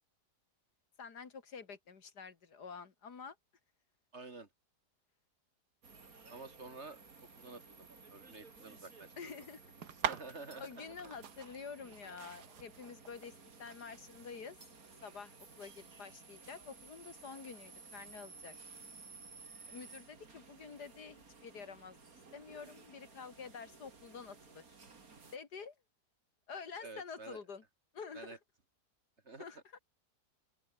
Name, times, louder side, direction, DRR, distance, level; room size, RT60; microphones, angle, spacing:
voice 1, 1.0-3.4 9.2-9.7 10.6-14.6 15.0-18.6 19.7-22.0 22.3-24.8 25.3-25.8 26.5-27.6 27.9-28.4 29.4-29.8, left 5 dB, 75° left, 2.7 m, -48 dB
voice 2, 4.1-4.5 6.3-7.0 7.4-9.4 10.1-10.8 26.8-27.4 28.1-28.4 29.2-29.4, right 3 dB, 40° right, 2.7 m, -50 dB
sound 1, 5.8-25.4, right 4 dB, 60° right, 3.2 m, -56 dB
sound 2, 9.8-17.5, right 8 dB, 80° right, 2.1 m, -46 dB
open air
omnidirectional pair, 1.7 m